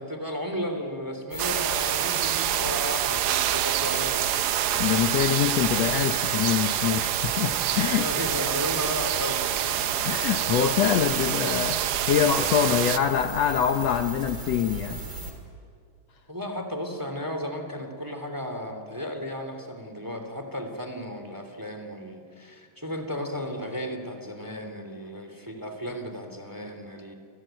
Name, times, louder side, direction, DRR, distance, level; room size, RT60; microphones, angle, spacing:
voice 1, 0.0-4.5 7.9-9.8 16.3-27.1, equal, 5° right, 6 dB, 2.4 m, -34 dB
sound 1, 1.3-15.3, right 2 dB, 35° right, 3.7 m, -37 dB
sound 2, 1.4-13.0, right 11 dB, 70° right, 1.7 m, -27 dB
voice 2, 4.8-8.0 10.0-15.0, left 9 dB, 90° left, 7 dB, 1.4 m, -25 dB
29.5 x 21.5 x 9.2 m, 2.2 s
omnidirectional pair, 4.2 m